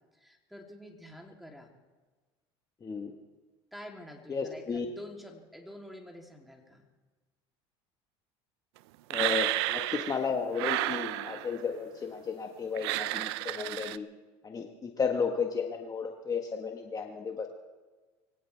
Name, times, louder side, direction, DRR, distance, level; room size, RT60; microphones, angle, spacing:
voice 1, 0.2-1.8 3.7-6.8, left 1 dB, ahead, 1 dB, 3.1 m, -48 dB
voice 2, 2.8-3.1 4.3-4.9 9.1-14.1 14.4-17.5, left 5 dB, 25° left, 3 dB, 1.5 m, -33 dB
sound 1, 9.1-10.2 10.5-11.6 12.8-14.0, right 17 dB, 75° right, 0.5 m, -31 dB
23.5 x 17.0 x 3.5 m, 1.3 s
hypercardioid pair, 85°, 13 cm